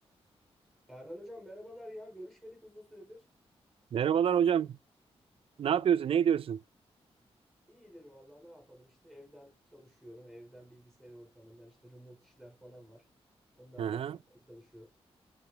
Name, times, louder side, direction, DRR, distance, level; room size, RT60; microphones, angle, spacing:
voice 1, 0.9-3.3 7.7-13.1 13.6-14.2 14.5-14.9, equal, ahead, 4.9 m, -50 dB
voice 2, 3.9-4.8 5.6-6.6 13.8-14.2, right 8 dB, 60° right, 0.4 m, -27 dB
7.8 x 6.7 x 2.8 m
wide cardioid pair, 145°, 11 cm